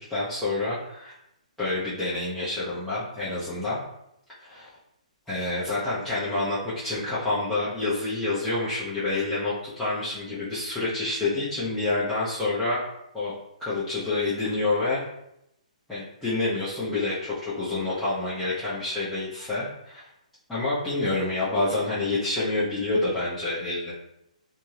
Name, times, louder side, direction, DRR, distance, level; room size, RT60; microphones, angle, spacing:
voice 1, 0.1-1.1 1.6-3.8 4.4-4.7 5.3-6.6 6.8-12.8 13.1-13.3 13.6-15.1 15.9-20.1 20.5-23.9, left 2 dB, 5° left, -13 dB, 0.7 m, -28 dB
2.6 x 2.2 x 3.1 m, 0.82 s
figure-of-eight pair, 130°, 4 cm